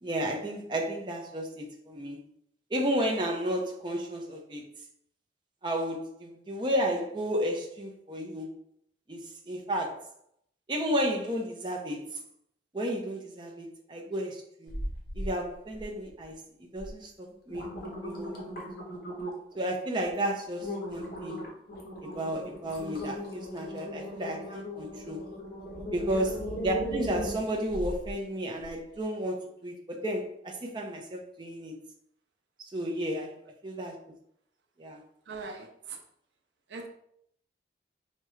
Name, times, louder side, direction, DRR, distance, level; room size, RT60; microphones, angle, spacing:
voice 1, 0.0-2.2 2.7-4.6 5.6-8.6 9.1-10.1 10.7-12.2 12.7-14.7 15.1-18.6 19.5-21.4 22.0-25.2 25.9-31.8 32.7-33.3 33.6-34.0 34.8-35.0, equal, 25° right, 0 dB, 0.5 m, -33 dB
sound 1, 14.7-15.3 15.7-16.2 16.8-16.9 17.3-19.5 20.0-20.2 20.6-28.1 28.6-28.7, equal, 55° left, 0.9 m, -37 dB
voice 2, 35.3-36.0 36.7-36.9, right 4 dB, 85° right, 4 dB, 0.5 m, -40 dB
4.7 x 2.1 x 3.1 m, 0.70 s
head